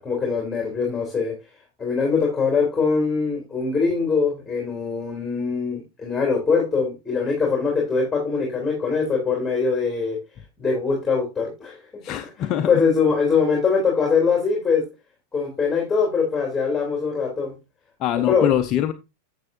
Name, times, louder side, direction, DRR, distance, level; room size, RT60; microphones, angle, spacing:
voice 1, 0.0-1.3 1.8-10.2 10.6-11.8 12.7-14.8 15.3-17.5 18.3-18.5, left 5 dB, 10° left, 2.9 m, -22 dB
voice 2, 12.0-12.8 18.0-18.9, left 11 dB, 40° left, 0.6 m, -23 dB
10.5 x 7.0 x 2.6 m
figure-of-eight pair, 95°, 0 cm